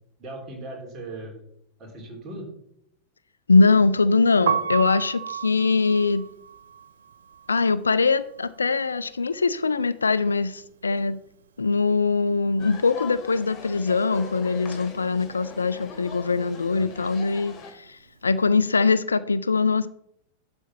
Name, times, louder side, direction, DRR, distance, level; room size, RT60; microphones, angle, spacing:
voice 1, 0.2-1.3 1.8-2.5 16.7-16.9, right 2 dB, 30° right, 3.5 m, -38 dB
voice 2, 3.5-6.2 7.5-11.2 11.6-19.9, left 4 dB, 75° left, 0.4 m, -22 dB
Piano, 4.3-10.3 10.5-12.1 12.4-18.8, right 8 dB, 65° right, 0.6 m, -33 dB
sound 1, 12.6-17.7, left 6 dB, 30° left, 1.9 m, -41 dB
11.5 x 4.4 x 5.9 m
figure-of-eight pair, 90°, 0 cm